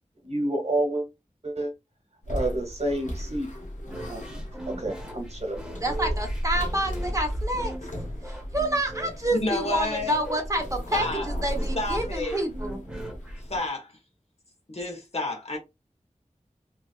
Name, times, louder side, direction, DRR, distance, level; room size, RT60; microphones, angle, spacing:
voice 1, 0.2-1.0 1.4-1.7 2.3-3.5 4.1-4.4 4.7-5.6, right 1 dB, 55° right, 1.1 m, -29 dB
sound 1, 2.2-13.7, equal, 75° left, 1.0 m, -35 dB
sound 2, 3.8-13.6, right 1 dB, 5° right, 1.0 m, -40 dB
voice 2, 5.7-7.7 8.3-12.8, right 1 dB, 25° right, 1.1 m, -28 dB
voice 3, 9.3-10.2 10.9-11.3 11.7-12.4 13.5-14.0 14.7-15.6, left 2 dB, 55° left, 1.3 m, -30 dB
3.0 x 2.6 x 2.4 m
wide cardioid pair, 55°, 13 cm